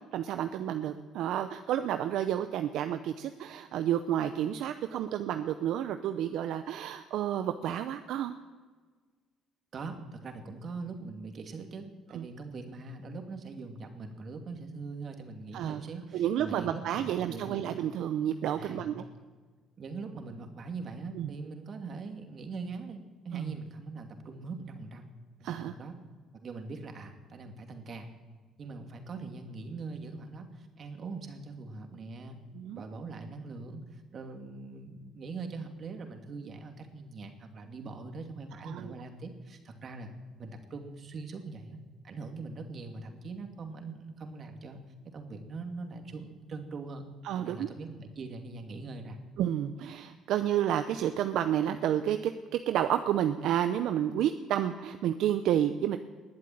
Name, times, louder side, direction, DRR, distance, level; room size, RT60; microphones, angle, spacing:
voice 1, 0.1-8.4 12.1-12.3 15.5-15.8 16.1-19.0 21.1-21.3 23.3-23.6 25.4-25.7 32.5-32.8 38.6-38.9 47.2-47.7 49.4-52.3 52.7-56.0, right 10 dB, 75° right, 9 dB, 0.7 m, -30 dB
voice 2, 9.7-17.6 18.5-18.8 19.8-25.1 25.4-25.9 26.3-28.1 28.6-32.4 32.7-40.1 40.4-44.8 45.1-47.0 47.4-49.2, right 3 dB, 50° right, 5 dB, 2.6 m, -42 dB
20.5 x 7.6 x 9.3 m, 1.4 s
supercardioid pair, 80°, 0 cm